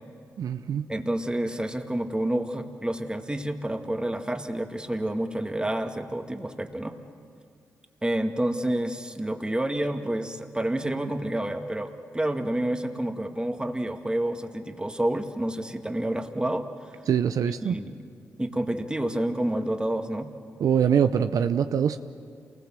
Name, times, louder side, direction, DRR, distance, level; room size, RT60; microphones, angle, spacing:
voice 1, 0.4-0.9 17.1-17.8 20.6-22.0, right 8 dB, 70° right, 9 dB, 0.7 m, -23 dB
voice 2, 0.9-6.9 8.0-16.7 17.4-18.0 18.4-20.3, right 1 dB, 15° right, 5 dB, 2.0 m, -29 dB
28.0 x 20.0 x 7.7 m, 2.3 s
supercardioid pair, 50°, 6 cm